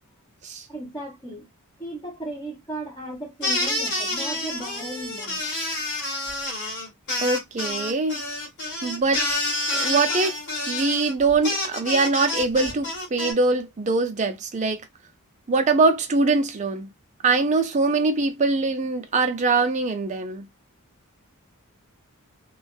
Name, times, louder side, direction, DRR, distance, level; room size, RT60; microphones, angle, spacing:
voice 1, 0.7-1.5 1.8-5.4, right 1 dB, 15° left, 0.9 m, -36 dB
sound 1, 3.4-13.3, left 1 dB, 55° left, 1.5 m, -28 dB
voice 2, 7.2-8.2 8.8-9.2 9.8-10.4 10.7-14.8 15.5-16.9 17.2-20.5, right 3 dB, 35° right, 0.5 m, -22 dB
2.5 x 2.3 x 2.2 m
head